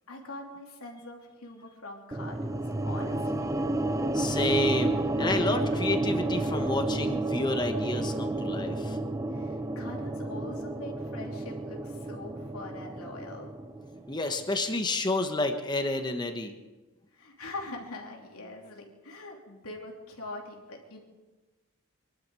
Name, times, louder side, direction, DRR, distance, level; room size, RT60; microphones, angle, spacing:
voice 1, 0.1-3.6 9.3-13.5 17.1-21.0, left 2 dB, 90° left, 0 dB, 3.2 m, -43 dB
sound 1, 2.1-14.4, right 2 dB, 15° right, 0.6 m, -31 dB
voice 2, 4.1-9.0 14.1-16.6, left 2 dB, 20° left, 6 dB, 1.2 m, -30 dB
24.0 x 12.0 x 4.8 m, 1.2 s
head